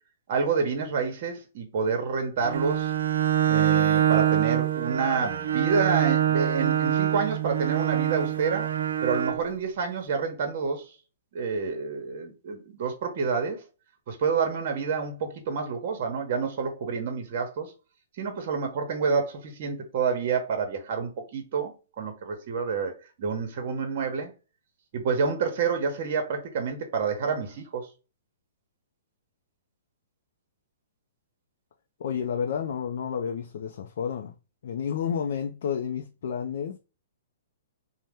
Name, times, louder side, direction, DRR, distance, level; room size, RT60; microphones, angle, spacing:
voice 1, 0.3-2.9 3.5-8.7 9.0-10.9 11.3-13.6 14.1-17.7 18.2-21.7 22.0-22.9 23.2-24.3 24.9-27.9, right 5 dB, 50° right, 0.9 m, -28 dB
Bowed string instrument, 2.4-9.5, right 11 dB, 85° right, 0.3 m, -25 dB
voice 2, 32.0-34.3 34.6-36.8, left 7 dB, 60° left, 0.4 m, -30 dB
2.8 x 2.1 x 3.4 m
hypercardioid pair, 145°, 0 cm